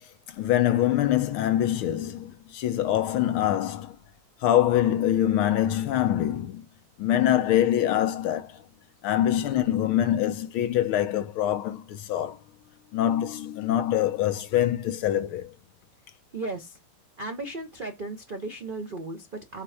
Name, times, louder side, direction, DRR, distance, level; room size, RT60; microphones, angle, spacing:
voice 1, 0.3-4.0 4.4-6.6 7.0-8.6 9.0-12.4 12.9-15.5, left 12 dB, 80° left, 1.6 m, -24 dB
voice 2, 16.3-16.8 17.2-19.6, right 2 dB, 80° right, 0.4 m, -35 dB
5.6 x 4.4 x 4.9 m
omnidirectional pair, 2.3 m